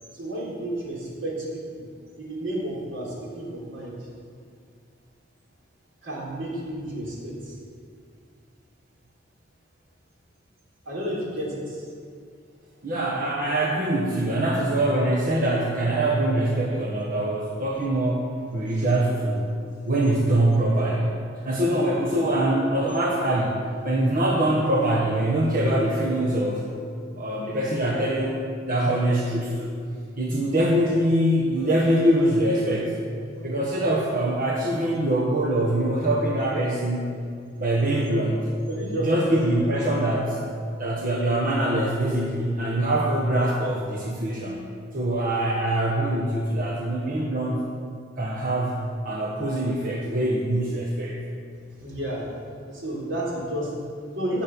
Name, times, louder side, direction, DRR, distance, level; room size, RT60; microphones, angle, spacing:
voice 1, 0.1-1.8 2.2-3.9 6.0-7.5 10.9-11.8 18.7-18.9 33.0-33.5 36.4-36.6 37.6-37.9 38.7-39.3 40.7-40.8 51.8-52.3 52.7-54.4, right 1 dB, 80° right, -4 dB, 3.6 m, -32 dB
voice 2, 12.8-19.5 19.8-21.1 21.4-23.6 23.8-26.6 27.2-29.8 30.2-32.9 33.4-37.1 37.6-38.4 39.0-40.4 40.8-47.6 48.2-48.8 49.0-51.2, right 1 dB, 45° right, -3 dB, 1.3 m, -23 dB
16.5 x 6.5 x 6.1 m, 2.2 s
head